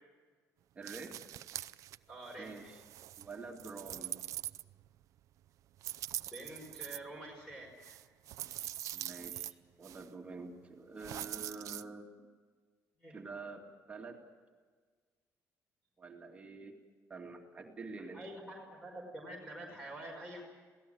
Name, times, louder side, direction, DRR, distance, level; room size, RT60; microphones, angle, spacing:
voice 1, 0.7-1.1 2.4-2.8 3.2-4.2 8.9-12.3 13.1-14.2 16.0-16.8 17.1-18.4, right 3 dB, 20° right, 1 dB, 2.3 m, -47 dB
sound 1, 0.8-2.0 2.3-5.0 5.8-7.0 7.8-9.5 9.8-10.1 11.0-11.8, right 13 dB, 65° right, 0.6 m, -43 dB
voice 2, 2.1-2.5 6.3-8.0 13.0-13.2 18.1-20.4, right 1 dB, 10° left, -1 dB, 5.4 m, -47 dB
27.0 x 18.0 x 7.9 m, 1.5 s
cardioid pair, 160°, 6 cm